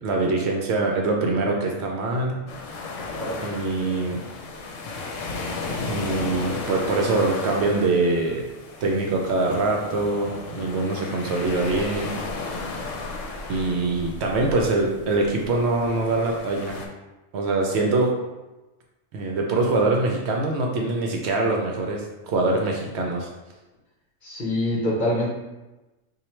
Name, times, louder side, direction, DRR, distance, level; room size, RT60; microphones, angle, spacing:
voice 1, 0.0-2.4 3.4-4.2 5.9-8.4 8.8-12.1 13.5-16.8 17.3-18.1 19.1-23.3, right 3 dB, 65° right, 0 dB, 0.8 m, -24 dB
sound 1, 2.5-16.9, left 3 dB, 80° left, 0.9 m, -34 dB
voice 2, 24.2-25.3, left 1 dB, 45° left, -4 dB, 0.8 m, -25 dB
3.0 x 2.4 x 4.3 m, 1.1 s
omnidirectional pair, 1.3 m